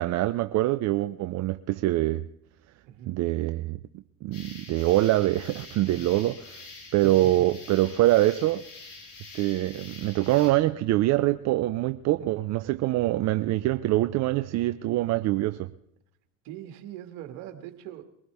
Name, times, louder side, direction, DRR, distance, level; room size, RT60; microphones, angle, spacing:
voice 1, 0.0-2.2 3.1-6.6 6.9-8.6 9.3-15.7, right 16 dB, 45° right, 10 dB, 0.6 m, -24 dB
sound 1, 4.3-10.5, left 3 dB, 75° left, 5.6 m, -46 dB
voice 2, 7.0-7.5 12.2-12.4 16.4-18.0, right 12 dB, 65° right, 6 dB, 2.1 m, -42 dB
22.0 x 16.5 x 3.5 m, 0.76 s
hypercardioid pair, 85°, 37 cm